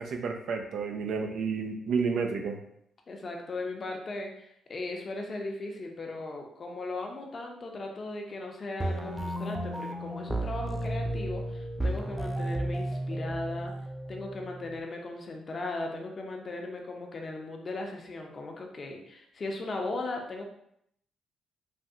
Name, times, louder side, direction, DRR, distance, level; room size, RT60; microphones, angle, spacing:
voice 1, 0.0-2.6, right 5 dB, 65° right, 4 dB, 0.4 m, -31 dB
voice 2, 3.1-13.7 14.1-20.4, left 2 dB, 40° left, 2 dB, 0.6 m, -37 dB
sound 1, 8.8-14.8, right 1 dB, 5° right, 0.3 m, -33 dB
3.3 x 2.3 x 2.7 m, 0.74 s
cardioid pair, 90°, 0 cm